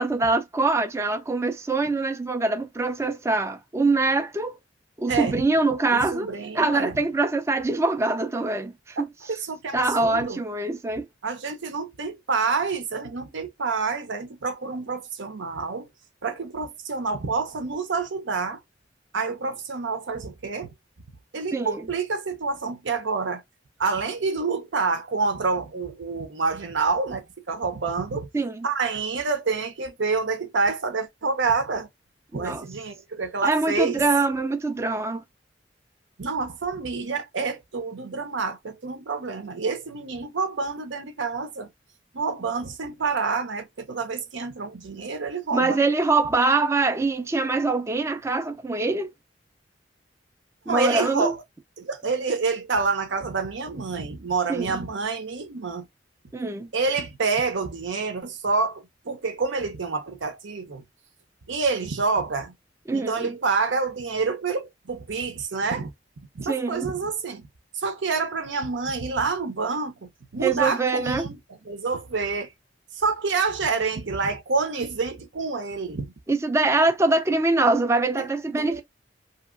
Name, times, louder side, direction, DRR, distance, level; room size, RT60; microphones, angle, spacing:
voice 1, 0.0-4.5 5.0-6.3 6.5-9.1 9.7-11.1 21.5-21.8 28.3-28.7 32.3-32.6 33.4-35.2 45.5-49.1 50.7-51.3 54.5-54.7 56.3-56.7 62.9-63.3 66.4-66.9 70.4-71.3 76.3-78.8, right 3 dB, 15° right, 0.3 m, -24 dB
voice 2, 5.1-5.4 5.9-7.0 9.0-10.4 11.2-15.9 16.2-18.6 19.1-20.7 21.3-23.4 23.8-28.3 28.6-31.9 32.3-34.0 36.2-41.7 42.1-45.8 50.7-51.4 51.8-55.9 56.7-60.8 61.5-62.5 62.9-65.9 66.3-67.5 67.8-72.5 72.9-76.1 78.2-78.3 78.6-78.8, right 4 dB, 90° right, 0.7 m, -28 dB
2.8 x 2.8 x 2.4 m
head